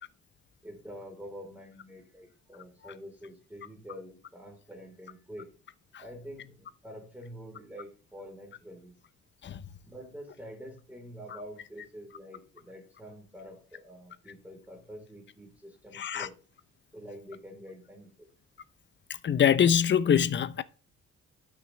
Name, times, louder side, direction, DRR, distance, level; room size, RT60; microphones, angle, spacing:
voice 1, 0.6-5.5 6.0-8.9 9.8-16.4 16.9-18.3, equal, 5° right, 3.8 m, -46 dB
voice 2, 15.9-16.3 19.2-20.6, left 8 dB, 40° left, 0.6 m, -24 dB
11.5 x 6.1 x 3.3 m
cardioid pair, 90°, 30 cm